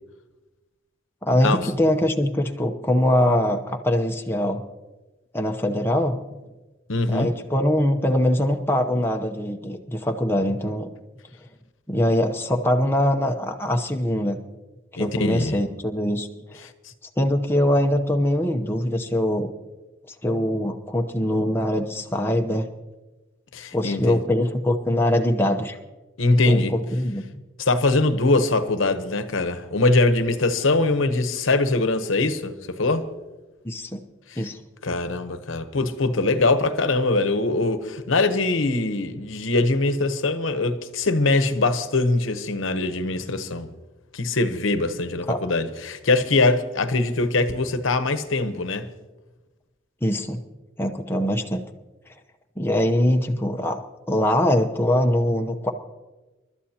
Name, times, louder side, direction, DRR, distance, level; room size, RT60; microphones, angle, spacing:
voice 1, 1.2-4.6 5.3-6.2 7.1-10.9 11.9-14.4 14.9-16.7 17.2-19.5 20.2-22.7 23.7-25.8 26.5-27.2 33.6-34.0 34.4-34.6 45.3-45.4 50.0-50.4 50.8-51.6 52.6-53.8 54.1-55.7, left 1 dB, 10° left, 0.8 m, -22 dB
voice 2, 6.9-7.3 15.0-15.6 23.5-24.2 26.2-26.7 27.6-33.1 34.3-34.4 34.8-43.7 44.1-48.9, left 2 dB, 80° left, 1.0 m, -22 dB
28.5 x 12.5 x 2.9 m
head